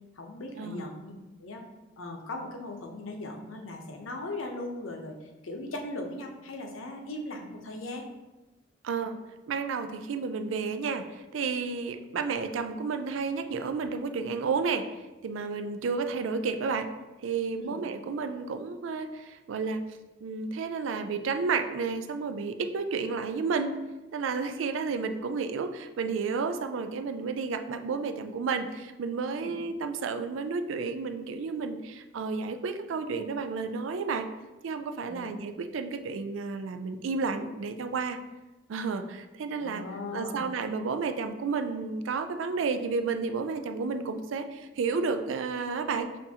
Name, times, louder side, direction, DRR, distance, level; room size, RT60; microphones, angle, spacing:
voice 1, 0.1-1.1 1.4-1.6 2.0-8.1 17.6-17.8 29.3-29.5 35.0-35.4 39.6-40.4, left 2 dB, 80° left, 2 dB, 0.7 m, -38 dB
voice 2, 8.8-9.2 9.5-14.9 15.2-16.9 17.2-19.8 20.2-23.7 24.1-34.3 34.6-38.2 38.7-39.8 40.1-46.1, right 4 dB, 75° right, 8 dB, 0.4 m, -31 dB
6.9 x 2.7 x 2.8 m, 1.1 s
head